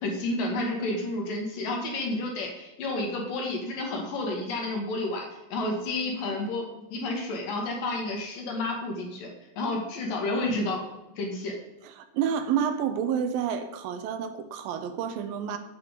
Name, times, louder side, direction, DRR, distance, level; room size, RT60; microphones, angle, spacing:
voice 1, 0.0-9.3 9.6-10.8 11.2-11.5, left 2 dB, 65° left, 1 dB, 3.6 m, -30 dB
voice 2, 11.8-15.6, right 8 dB, 80° right, 9 dB, 2.6 m, -29 dB
8.7 x 8.4 x 5.1 m, 0.96 s
omnidirectional pair, 4.2 m